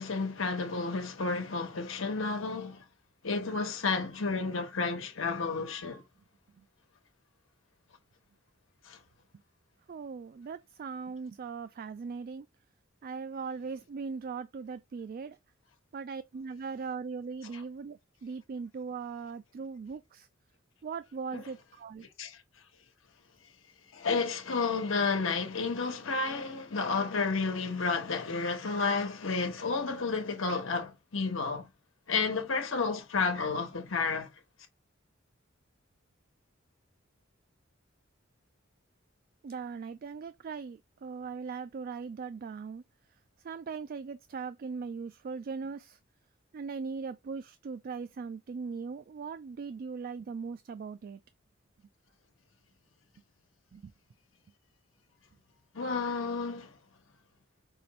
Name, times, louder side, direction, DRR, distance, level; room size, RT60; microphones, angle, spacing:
voice 1, 0.0-2.8 3.2-6.0 8.9-9.0 21.3-21.4 22.2-22.4 23.9-31.7 32.1-34.3 55.7-56.7, left 4 dB, 75° left, 1.2 m, -31 dB
voice 2, 9.9-12.5 13.0-15.4 15.9-20.3 20.8-22.0 39.4-42.8 43.4-46.0 46.5-51.2 53.7-53.9, right 5 dB, 45° right, 0.3 m, -39 dB
5.5 x 2.5 x 3.1 m
head